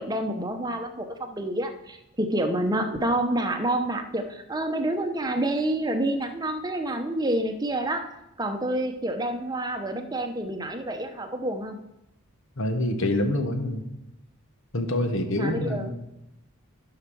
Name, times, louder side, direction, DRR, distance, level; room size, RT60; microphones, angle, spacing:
voice 1, 0.0-8.1 8.4-11.8 15.3-15.9, right 1 dB, 15° right, 6 dB, 0.9 m, -28 dB
voice 2, 12.6-13.8 14.7-15.9, left 1 dB, 55° left, 5 dB, 1.3 m, -26 dB
13.5 x 5.8 x 6.2 m, 0.89 s
head